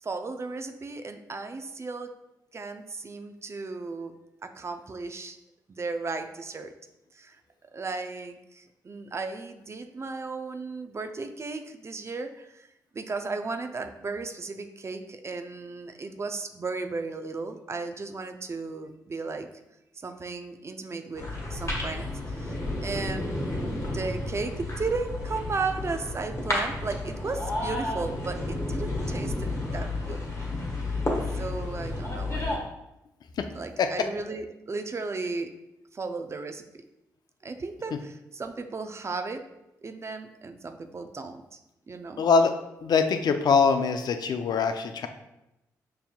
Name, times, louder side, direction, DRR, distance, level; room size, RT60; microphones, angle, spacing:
voice 1, 0.0-2.1 2.5-4.1 4.4-5.4 5.7-6.7 7.1-7.4 7.7-12.7 12.9-19.5 20.0-30.2 31.3-32.5 33.5-35.5 35.9-36.6 37.4-39.4 39.8-41.6 41.9-42.2, right 3 dB, 35° right, 7 dB, 0.4 m, -35 dB
sound 1, 21.1-32.6, left 2 dB, 35° left, 1.2 m, -31 dB
voice 2, 42.2-42.5 42.8-45.1, left 5 dB, 60° left, 7 dB, 0.4 m, -23 dB
5.7 x 2.6 x 2.2 m, 0.90 s
supercardioid pair, 45°, 8 cm